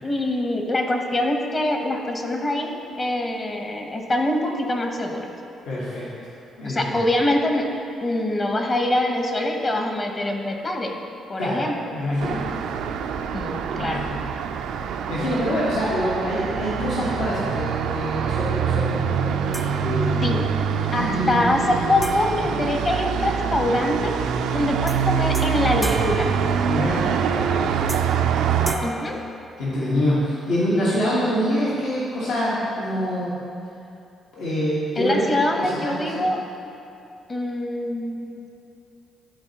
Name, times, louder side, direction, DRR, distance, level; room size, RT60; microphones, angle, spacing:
voice 1, 0.0-5.3 6.6-7.7 8.0-11.0 11.3-11.7 13.3-14.1 20.2-20.4 20.9-24.1 24.5-26.3 28.8-29.2 35.0-36.4 37.3-38.4, left 1 dB, 30° left, 3 dB, 0.9 m, -24 dB
voice 2, 5.6-6.1 6.6-7.0 11.4-11.6 11.9-12.4 13.7-14.2 14.6-14.7 15.1-20.4 20.9-21.5 22.4-22.5 26.7-27.1 27.3-27.6 28.5-28.8 29.6-33.3 34.3-36.3, equal, 80° left, -8 dB, 1.3 m, -26 dB
Traffic noise roadway noise, 12.2-28.8, right 7 dB, 85° right, 0.3 m, -25 dB
sound 1, 19.5-20.5 22.0-23.6 24.9-25.0 25.3-27.2 27.9-28.3 28.7-30.1, equal, 5° left, 0.4 m, -37 dB
11.0 x 4.2 x 2.9 m, 2.8 s
cardioid pair, 90°, 0 cm